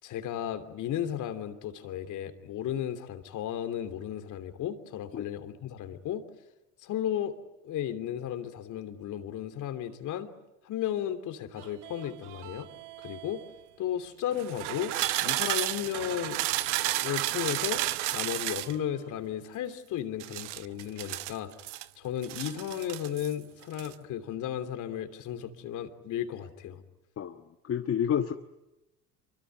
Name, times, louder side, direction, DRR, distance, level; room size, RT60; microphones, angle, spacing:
voice 1, 0.0-6.2 6.8-7.3 7.6-10.3 10.6-12.7 13.0-13.4 13.8-14.9 15.2-16.4 16.8-17.8 18.1-26.8, left 10 dB, 55° left, 8 dB, 3.1 m, -34 dB
sound 1, 11.6-13.5 14.3-18.8 20.2-21.8 22.2-23.3 23.6-23.9, right 16 dB, 80° right, 1.0 m, -33 dB
voice 2, 27.2-28.3, left 9 dB, 40° left, 6 dB, 1.4 m, -30 dB
26.0 x 24.0 x 9.3 m, 0.96 s
hypercardioid pair, 70°, 35 cm